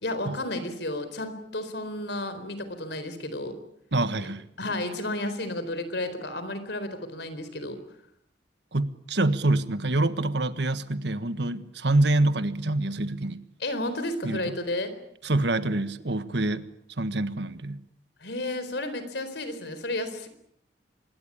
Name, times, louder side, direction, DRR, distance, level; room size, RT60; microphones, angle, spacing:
voice 1, 0.0-3.6 4.6-7.8 13.6-14.9 18.2-20.3, left 1 dB, 65° left, 11 dB, 4.3 m, -32 dB
voice 2, 3.9-4.5 8.7-13.4 14.2-14.5 15.2-16.7 17.0-17.8, right 2 dB, 65° right, 12 dB, 1.5 m, -26 dB
25.5 x 22.0 x 8.7 m, 0.70 s
head